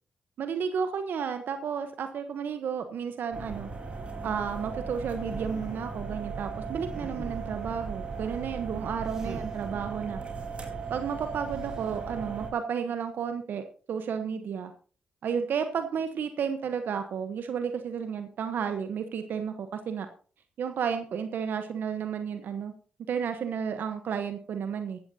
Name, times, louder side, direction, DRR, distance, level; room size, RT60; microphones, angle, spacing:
voice 1, 0.4-3.7 4.2-10.2 10.9-14.7 15.2-20.1 20.6-22.7 23.1-25.0, right 7 dB, 70° right, 8 dB, 1.0 m, -32 dB
sound 1, 3.3-12.5, right 4 dB, 35° right, 4.0 m, -37 dB
sound 2, 5.3-5.8 6.7-7.6 9.1-9.6 11.5-12.0, right 1 dB, 20° right, 3.6 m, -45 dB
14.5 x 13.0 x 2.8 m, 0.40 s
supercardioid pair, 45°, 3 cm